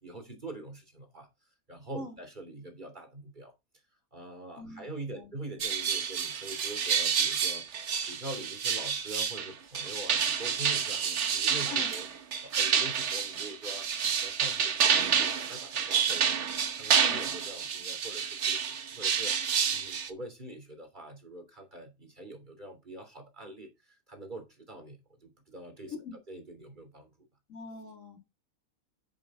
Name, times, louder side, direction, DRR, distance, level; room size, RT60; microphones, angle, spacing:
voice 1, 0.0-1.3 1.7-3.5 4.1-7.7 8.0-12.1 12.4-18.6 18.9-26.0 26.3-27.1, right 1 dB, 35° right, 3.4 m, -44 dB
voice 2, 4.6-5.3 11.7-11.9 17.0-17.2 25.9-26.1 27.5-28.2, left 3 dB, 65° left, 2.8 m, -42 dB
sound 1, 5.6-20.1, right 7 dB, 55° right, 1.3 m, -29 dB
11.0 x 7.4 x 3.7 m
omnidirectional pair, 1.5 m